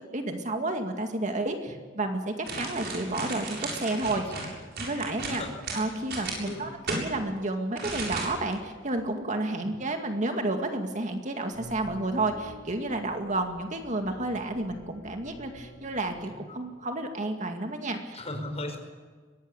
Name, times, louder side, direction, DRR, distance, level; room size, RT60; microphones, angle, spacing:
voice 1, 0.1-4.2 4.8-5.4 5.7-18.2, right 2 dB, 40° right, 5 dB, 2.2 m, -31 dB
sound 1, 2.4-7.0 7.8-8.6 8.9-9.0, right 3 dB, 60° right, 7.5 m, -35 dB
voice 2, 5.3-5.6 6.4-6.6 9.5-9.7 18.1-18.8, left 1 dB, 35° left, 4 dB, 5.2 m, -36 dB
sound 2, 11.5-16.9, left 1 dB, 70° left, 6.1 m, -49 dB
23.0 x 18.5 x 8.3 m, 1.5 s
head